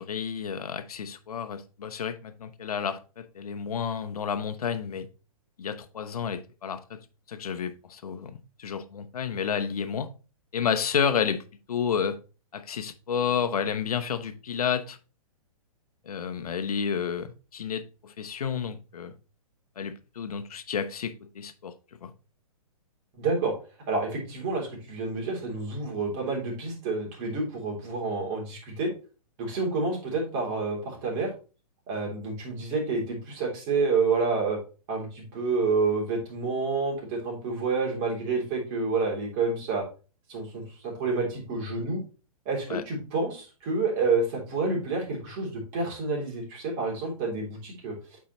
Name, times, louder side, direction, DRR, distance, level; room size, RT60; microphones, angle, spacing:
voice 1, 0.0-5.1 5.6-7.0 7.3-10.1 10.5-11.4 11.7-12.2 12.5-15.0 16.0-19.1 19.8-21.7 22.0-22.1 42.7-42.8, left 7 dB, 80° left, 0.9 m, -31 dB
voice 2, 23.2-23.5 23.9-28.9 29.4-31.3 31.9-34.6 34.9-39.8 40.3-42.0 42.4-47.9, right 4 dB, 35° right, 3.3 m, -29 dB
8.3 x 4.7 x 3.1 m
hypercardioid pair, 135°, 19 cm